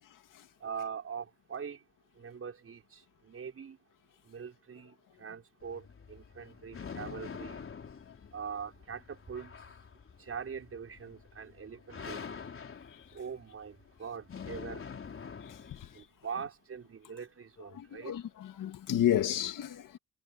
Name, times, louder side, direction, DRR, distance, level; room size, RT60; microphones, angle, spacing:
voice 1, 0.6-1.8 2.2-3.8 4.3-7.6 8.3-9.5 10.2-12.4 13.1-14.8 15.9-18.1, right 6 dB, 40° right, 5.9 m, -42 dB
sound 1, 5.6-16.0, left 6 dB, 40° left, 3.9 m, -46 dB
voice 2, 17.7-20.0, left 11 dB, 70° left, 2.3 m, -31 dB
cardioid pair, 115°, 33 cm